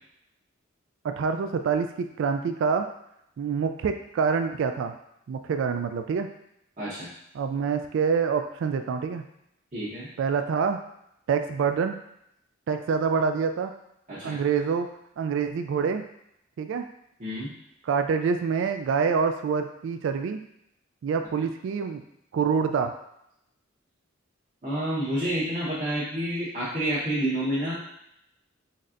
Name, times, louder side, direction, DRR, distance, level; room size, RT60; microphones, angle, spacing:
voice 1, 1.0-2.9 3.4-4.9 5.3-6.3 7.3-9.2 10.2-10.8 11.3-12.0 12.7-13.7 14.2-14.9 15.2-16.0 16.6-16.9 17.8-20.4 21.0-22.0 22.3-22.9, right 6 dB, 65° right, 7 dB, 0.3 m, -26 dB
voice 2, 6.8-7.1 9.7-10.1 14.1-14.4 17.2-17.5 24.6-27.7, right 1 dB, 40° right, -10 dB, 1.0 m, -29 dB
4.1 x 3.2 x 2.5 m, 0.78 s
head